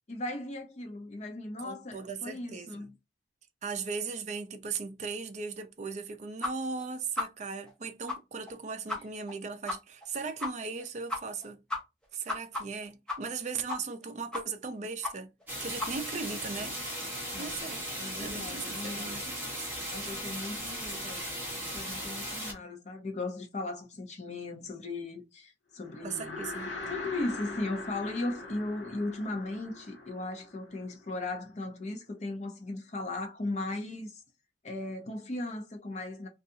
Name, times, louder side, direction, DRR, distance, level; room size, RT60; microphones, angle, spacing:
voice 1, 0.1-2.9 17.3-17.6 18.0-19.3 19.9-26.4 26.9-34.2 34.6-36.3, left 2 dB, 35° left, 0.6 m, -37 dB
voice 2, 1.6-2.9 3.6-11.6 12.1-15.3 15.6-16.8 17.4-17.9 18.2-19.7 26.0-26.8, right 4 dB, 40° right, 0.4 m, -38 dB
sound 1, 6.4-6.5 6.8-6.9 7.2-7.3 7.7-7.8 8.1-8.2 8.5-8.6 8.9-9.0 9.3-9.4 9.7-9.8 10.0-10.1 10.4-10.5 10.8-10.9 11.1-11.5 11.7-13.4 13.7-14.0 14.3-14.7 15.0-15.1 15.4-15.5 15.8-15.9, left 2 dB, 5° left, 0.7 m, -34 dB
sound 2, 15.5-22.5, equal, 10° right, 1.1 m, -37 dB
sound 3, 25.8-31.2, left 3 dB, 75° left, 0.7 m, -42 dB
2.6 x 2.3 x 2.7 m
head